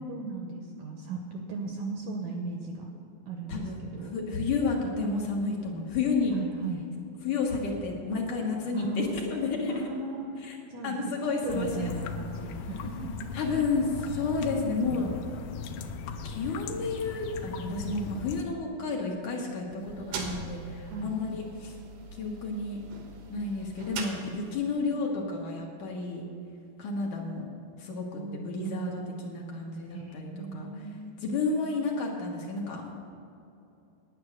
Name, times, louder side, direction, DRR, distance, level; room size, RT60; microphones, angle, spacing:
voice 1, 0.0-2.9 3.3-4.1 6.3-6.8 8.7-9.2 9.7-13.4 14.9-15.1 20.8-21.2 28.2-28.9 29.9-31.6, right 3 dB, 75° right, 2 dB, 1.8 m, -37 dB
voice 2, 4.1-6.3 7.2-9.7 10.4-10.6 10.8-11.9 13.3-15.1 16.2-21.7 22.2-22.8 23.3-26.3 26.8-27.5 27.8-30.7 31.2-33.0, left 4 dB, 65° left, -1 dB, 2.5 m, -31 dB
sound 1, 11.5-18.5, left 5 dB, 85° left, 2.5 m, -38 dB
sound 2, 19.7-24.8, right 4 dB, 90° right, 3.1 m, -41 dB
9.8 x 9.6 x 6.4 m, 2.7 s
omnidirectional pair, 4.3 m